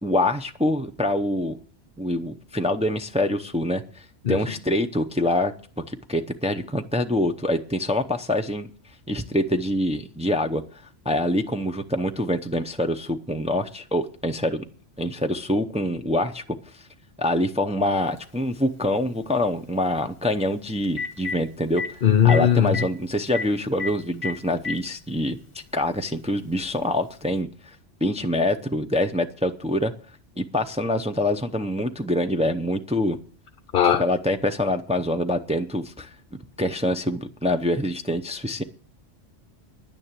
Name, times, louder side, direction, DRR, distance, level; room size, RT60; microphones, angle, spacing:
voice 1, 0.0-1.6 2.0-3.8 4.3-5.5 5.9-8.7 9.1-10.6 11.0-14.6 15.0-16.4 17.2-22.0 22.2-25.4 25.7-27.5 28.0-29.9 30.4-33.2 34.0-36.1 36.6-38.6, left 1 dB, 5° right, 0.6 m, -25 dB
Telephone, 18.2-18.3 20.4-20.5 20.8-21.4 21.8-21.9 22.3-22.4 22.7-22.8 23.3-23.4 23.8-23.9 24.2-24.8 25.8-25.9 27.3-27.4, left 5 dB, 35° left, 1.6 m, -29 dB
voice 2, 22.0-22.7 33.7-34.0, left 9 dB, 50° left, 0.9 m, -18 dB
10.5 x 9.7 x 7.4 m
omnidirectional pair, 1.2 m